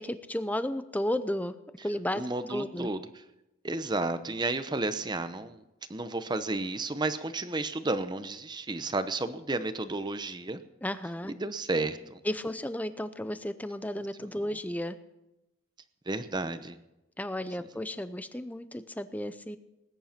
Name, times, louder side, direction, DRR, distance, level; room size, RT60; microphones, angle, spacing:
voice 1, 0.0-1.5 1.8-2.2 2.5-2.9 10.8-11.3 12.2-15.0 17.2-19.6, left 1 dB, 10° left, 12 dB, 0.6 m, -33 dB
voice 2, 2.1-3.0 3.6-5.6 5.9-10.6 11.4-12.2 16.1-16.8, right 2 dB, 20° right, 11 dB, 0.8 m, -32 dB
19.5 x 10.0 x 5.9 m, 0.94 s
head